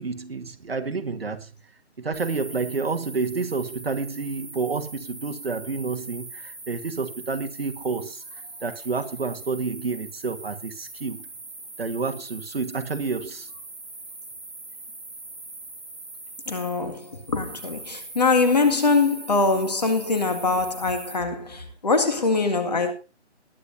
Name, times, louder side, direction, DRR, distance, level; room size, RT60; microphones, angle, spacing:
voice 1, 0.0-1.5 2.0-8.2 8.6-11.3 11.8-13.5, right 4 dB, 55° right, 1.5 m, -29 dB
sound 1, 2.1-21.1, right 2 dB, ahead, 4.5 m, -41 dB
voice 2, 16.5-22.9, left 3 dB, 35° left, 2.0 m, -23 dB
20.5 x 10.0 x 2.6 m
hypercardioid pair, 175°, 35 cm